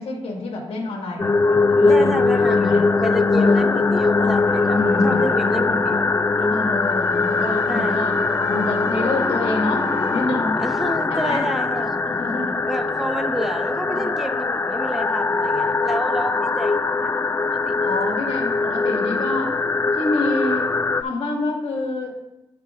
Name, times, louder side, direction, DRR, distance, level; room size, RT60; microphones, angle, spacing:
voice 1, 0.0-2.9 3.3-3.6 4.2-4.3 4.6-5.3 6.5-8.2 8.5-10.6 11.1-11.4 12.0-12.6 13.9-14.1 16.3-16.4 17.8-19.5 19.9-20.7 21.0-22.2, left 2 dB, 80° left, 0 dB, 1.8 m, -28 dB
sound 1, 1.2-21.0, left 3 dB, 25° left, 0.3 m, -21 dB
voice 2, 1.9-6.1 6.4-6.8 7.7-8.0 10.6-12.1 12.7-17.6, equal, 5° right, 7 dB, 0.8 m, -29 dB
sound 2, 4.4-10.2, right 1 dB, 20° right, 1.6 m, -37 dB
13.0 x 4.6 x 2.5 m, 0.92 s
cardioid pair, 60°, 10 cm